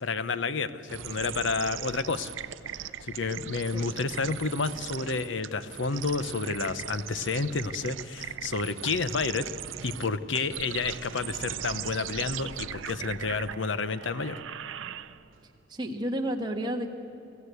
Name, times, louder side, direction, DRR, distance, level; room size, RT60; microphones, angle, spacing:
voice 1, 0.0-2.3 3.0-9.5 9.8-14.4, left 4 dB, 75° left, 13 dB, 0.8 m, -30 dB
sound 1, 0.9-15.4, right 10 dB, 85° right, 0.5 m, -39 dB
voice 2, 15.7-16.9, right 1 dB, 20° right, 1 dB, 1.5 m, -31 dB
24.5 x 15.0 x 8.3 m, 3.0 s
head